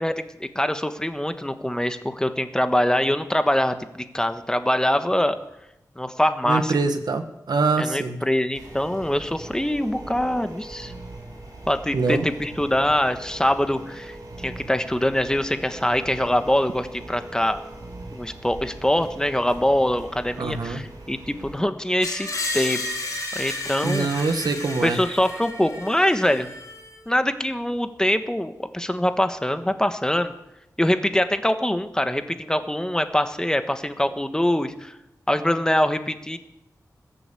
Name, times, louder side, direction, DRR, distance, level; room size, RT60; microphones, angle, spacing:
voice 1, 0.0-5.4 6.0-6.8 7.8-10.9 11.7-17.6 18.1-22.3 22.5-22.8 23.3-24.3 24.8-26.5 27.1-30.3 30.8-34.9 35.3-36.4, left 1 dB, 10° left, 8 dB, 1.2 m, -24 dB
voice 2, 6.4-8.2 11.9-12.3 20.4-20.8 23.8-25.0, right 4 dB, 85° right, 8 dB, 1.5 m, -24 dB
sound 1, 8.5-21.6, right 2 dB, 65° right, 5.8 m, -41 dB
Screech, 22.0-27.0, left 2 dB, 60° left, 4.5 m, -32 dB
21.0 x 8.0 x 8.4 m, 0.85 s
wide cardioid pair, 110°, 7 cm